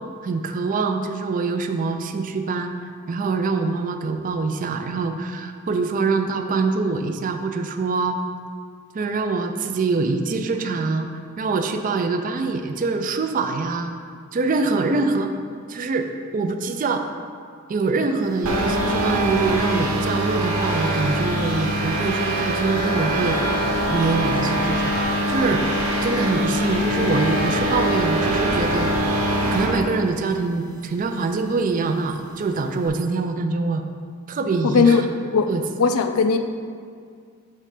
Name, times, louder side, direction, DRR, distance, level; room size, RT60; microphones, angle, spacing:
voice 1, 0.2-2.7 3.1-8.2 8.9-11.1 11.4-13.9 14.3-15.3 15.7-16.1 16.3-17.0 17.7-23.4 23.9-25.0 25.3-25.6 26.0-29.2 29.5-33.8 34.3-35.1 35.5-35.6, right 4 dB, 40° right, 6 dB, 0.4 m, -24 dB
sound 1, 18.4-29.8, right 1 dB, 75° right, 1.0 m, -23 dB
voice 2, 34.6-35.0 35.3-35.5 35.8-36.4, left 5 dB, 75° left, 7 dB, 0.4 m, -17 dB
6.5 x 3.2 x 4.9 m, 2.1 s
head